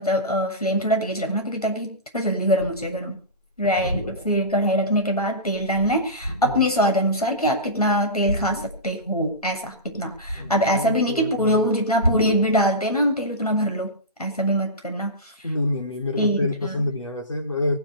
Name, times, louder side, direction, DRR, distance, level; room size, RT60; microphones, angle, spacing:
voice 1, 0.0-3.2 3.6-13.9 14.2-15.2 16.2-16.8, equal, 65° left, 6 dB, 7.4 m, -23 dB
sound 1, 2.6-3.0 3.7-4.6 5.0-5.2 5.5-6.8 8.3-9.1 9.3-11.0 12.0-12.6, equal, 10° left, 0.7 m, -30 dB
voice 2, 10.3-11.7 15.4-17.8, left 2 dB, 50° left, 2 dB, 4.2 m, -27 dB
24.0 x 11.0 x 4.6 m, 0.39 s
figure-of-eight pair, 165°, 21 cm